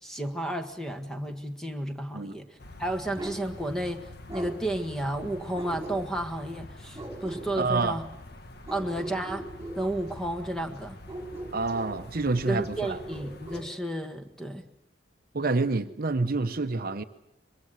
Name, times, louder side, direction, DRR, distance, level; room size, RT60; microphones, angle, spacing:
voice 1, 0.0-8.1 8.7-9.5 9.8-11.0 12.4-14.6, right 1 dB, 5° left, 6 dB, 1.7 m, -32 dB
sound 1, 2.6-13.6, left 2 dB, 60° left, 1.8 m, -46 dB
Bark, 3.1-3.4 4.3-4.5 5.6-6.3 6.9-7.5 8.7-9.8 11.1-12.0 12.8-13.7, right 2 dB, 15° right, 4.1 m, -39 dB
voice 2, 7.6-8.0 11.5-13.0 15.3-17.0, right 3 dB, 55° right, 10 dB, 0.9 m, -27 dB
23.5 x 22.5 x 8.0 m, 0.82 s
head